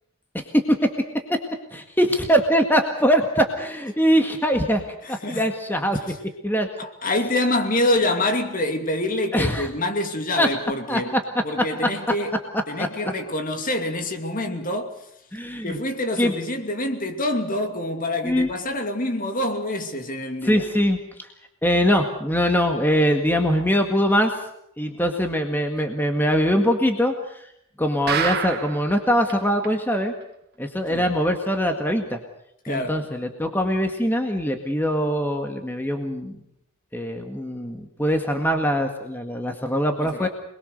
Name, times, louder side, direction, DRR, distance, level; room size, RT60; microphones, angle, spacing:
voice 1, 0.3-0.9 1.3-1.4 1.7-4.8 5.1-6.2 6.4-6.7 9.3-9.7 10.4-10.5 10.9-11.0 12.8-12.9 15.3-15.8 16.2-16.3 18.2-18.5 20.4-21.0 21.6-24.4 24.8-27.5 27.8-30.1 30.6-32.2 32.7-36.4 36.9-40.3, equal, 10° left, 1.8 m, -22 dB
voice 2, 5.0-5.5 6.8-11.1 11.4-12.3 12.7-15.0 15.6-20.6 30.9-31.1 32.6-33.0 40.0-40.3, left 1 dB, 40° left, 2.7 m, -26 dB
sound 1, 28.1-28.9 29.3-29.4 29.6-29.7 30.2-30.3, right 7 dB, 50° right, 2.1 m, -26 dB
27.5 x 21.5 x 6.7 m
head